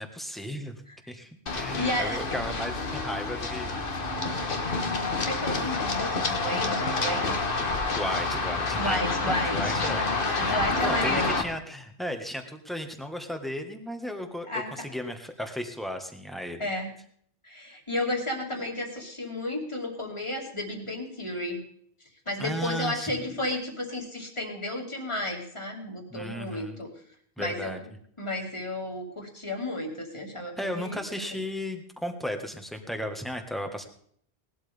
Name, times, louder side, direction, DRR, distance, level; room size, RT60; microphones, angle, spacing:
voice 1, 0.0-0.7 1.1-3.8 7.6-10.1 10.4-14.5 14.8-16.7 22.4-23.3 26.1-26.8 27.4-27.8 30.6-33.8, equal, ahead, 5 dB, 1.5 m, -35 dB
voice 2, 0.9-1.2 1.7-2.2 5.2-7.4 7.9-8.1 8.8-9.8 10.4-11.3 14.4-14.7 16.6-16.9 17.4-21.6 22.3-26.9 27.4-27.8 28.2-31.4, left 1 dB, 25° left, 1 dB, 2.5 m, -32 dB
Run, 1.5-11.4, left 3 dB, 55° left, 1.5 m, -28 dB
19.0 x 12.0 x 3.5 m, 0.62 s
omnidirectional pair, 1.1 m